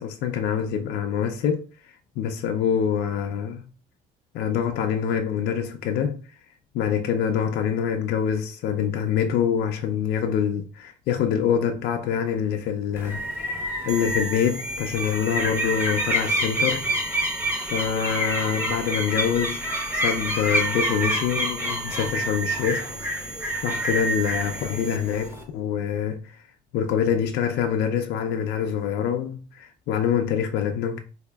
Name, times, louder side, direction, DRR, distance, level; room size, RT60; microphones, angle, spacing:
voice 1, 0.0-1.6 2.2-3.7 4.3-6.2 6.7-13.6 13.8-16.8 17.7-19.7 19.9-22.9 23.6-26.4 26.7-31.0, left 8 dB, 75° left, 0.4 m, -25 dB
sound 1, 13.0-25.4, right 1 dB, 15° right, 0.8 m, -28 dB
sound 2, 13.9-25.3, right 2 dB, 85° right, 0.6 m, -39 dB
4.0 x 2.6 x 2.3 m
cardioid pair, 110°, 17 cm